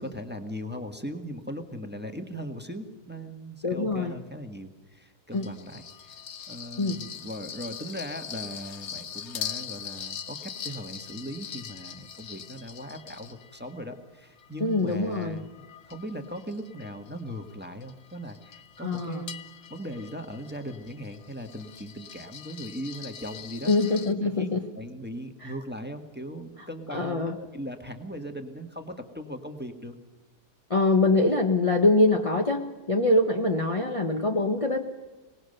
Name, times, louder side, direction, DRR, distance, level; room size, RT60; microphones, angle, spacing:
voice 1, 0.0-6.2 6.5-23.8 24.2-29.9, equal, 5° right, 5 dB, 1.5 m, -39 dB
voice 2, 3.6-4.1 5.3-5.5 6.8-7.0 14.6-15.4 18.8-19.2 23.7-24.6 25.4-25.5 26.9-27.4 30.7-34.8, left 2 dB, 25° left, 2 dB, 1.1 m, -24 dB
sound 1, 5.3-13.8 14.4-24.1, left 8 dB, 55° left, 1.1 m, -42 dB
24.5 x 19.5 x 6.7 m, 1.2 s
omnidirectional pair, 1.6 m